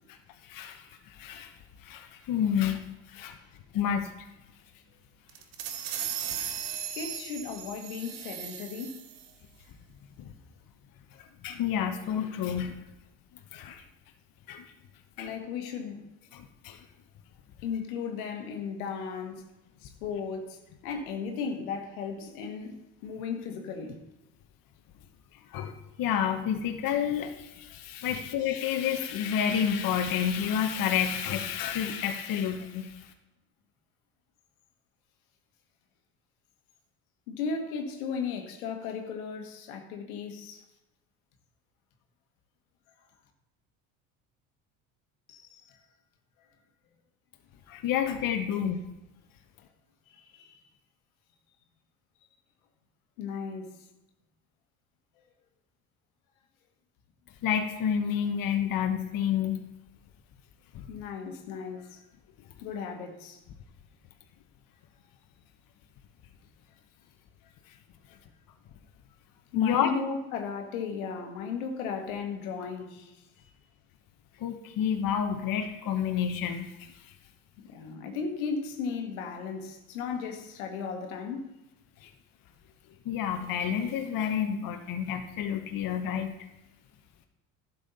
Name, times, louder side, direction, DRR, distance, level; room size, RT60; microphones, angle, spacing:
voice 1, 0.4-1.5 1.8-2.8 3.1-3.3 3.7-4.3 5.8-6.0 6.4-6.5 10.2-10.3 11.2-12.8 13.5-13.8 14.5-14.6 15.2-15.3 16.3-16.8 25.5-33.1 47.7-48.9 57.4-59.6 69.5-69.9 74.4-76.9 82.0-82.1 83.0-86.3, left 8 dB, 50° left, 1.1 m, -29 dB
sound 1, 5.3-9.3, right 9 dB, 65° right, 1.4 m, -37 dB
voice 2, 6.9-8.9 15.2-16.0 17.6-19.4 19.8-22.8 23.0-24.0 37.3-40.6 45.3-45.8 50.1-50.6 53.2-53.7 60.9-62.0 62.6-63.4 68.1-68.2 69.5-73.5 77.6-81.4, left 5 dB, 80° left, 1.6 m, -36 dB
11.5 x 7.3 x 4.1 m
hypercardioid pair, 70°, 42 cm